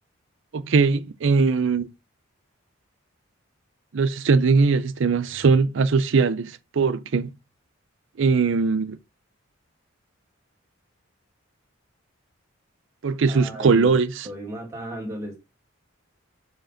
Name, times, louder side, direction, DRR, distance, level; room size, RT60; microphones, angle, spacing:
voice 1, 0.5-1.9 3.9-7.3 8.2-9.0 13.0-14.3, right 4 dB, 60° right, 0.4 m, -20 dB
voice 2, 13.3-13.9 14.2-15.4, right 1 dB, 15° right, 2.4 m, -34 dB
5.1 x 4.9 x 5.7 m
head